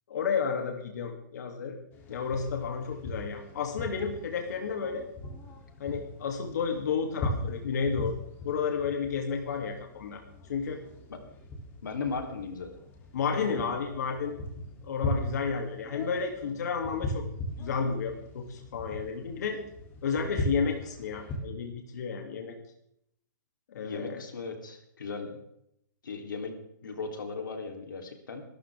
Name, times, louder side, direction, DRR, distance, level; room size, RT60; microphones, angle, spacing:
voice 1, 0.1-1.8 2.1-5.0 5.8-8.1 8.4-10.2 10.5-10.8 13.1-14.3 14.8-17.2 17.6-19.6 20.0-22.6 23.7-24.2, left 5 dB, 60° left, 3 dB, 2.7 m, -31 dB
sound 1, 1.9-21.4, left 1 dB, 20° left, 3.0 m, -39 dB
voice 2, 11.8-12.7 23.8-25.3 26.0-26.5 26.8-28.4, left 4 dB, 90° left, 4 dB, 3.5 m, -37 dB
24.5 x 13.0 x 3.6 m, 0.75 s
hypercardioid pair, 160°, 10 cm